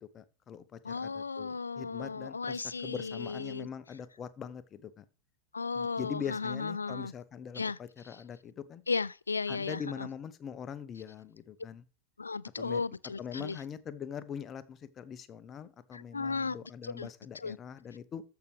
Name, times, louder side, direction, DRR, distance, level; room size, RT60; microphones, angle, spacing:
voice 1, 0.1-5.0 5.7-8.8 9.5-11.8 12.6-12.8 13.2-18.2, left 7 dB, 25° left, 0.8 m, -42 dB
voice 2, 0.8-3.7 5.5-7.1 7.6-7.8 8.9-10.1 12.2-13.6 15.9-16.6 16.8-17.1 17.4-17.6, left 4 dB, 75° left, 0.3 m, -35 dB
13.5 x 5.7 x 3.3 m
figure-of-eight pair, 90°, 0 cm